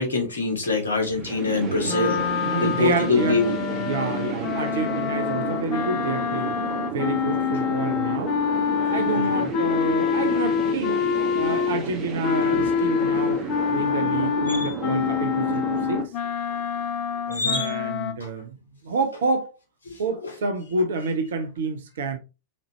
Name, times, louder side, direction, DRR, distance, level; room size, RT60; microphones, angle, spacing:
voice 1, 0.0-2.3 2.6-3.6 9.1-9.5 10.2-10.3 12.5-12.7 13.1-13.2 14.5-14.7 17.3-17.8 19.9-20.0, left 3 dB, 70° left, 1.8 m, -25 dB
sound 1, 1.0-16.0, right 8 dB, 30° right, 1.8 m, -32 dB
sound 2, 1.8-11.9 12.2-18.1, left 8 dB, 40° left, 0.6 m, -26 dB
voice 2, 2.5-3.4 3.7-6.6 6.9-8.4 8.9-11.0 11.4-13.4 13.7-16.0 17.4-18.6 18.8-19.5 20.0-22.2, right 4 dB, 60° right, 0.6 m, -28 dB
4.2 x 4.0 x 3.1 m
figure-of-eight pair, 90°, 0 cm